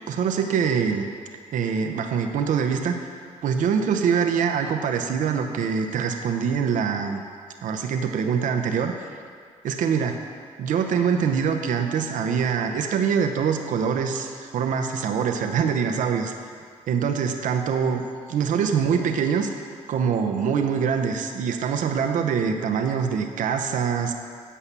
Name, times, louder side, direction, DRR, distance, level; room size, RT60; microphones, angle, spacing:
voice 1, 0.1-1.1 1.5-3.1 3.4-7.2 7.6-9.1 9.6-10.1 10.6-16.3 16.9-18.0 18.3-19.5 19.9-24.1, right 6 dB, 80° right, 4 dB, 0.7 m, -24 dB
8.4 x 5.6 x 7.2 m, 2.1 s
cardioid pair, 80°, 13 cm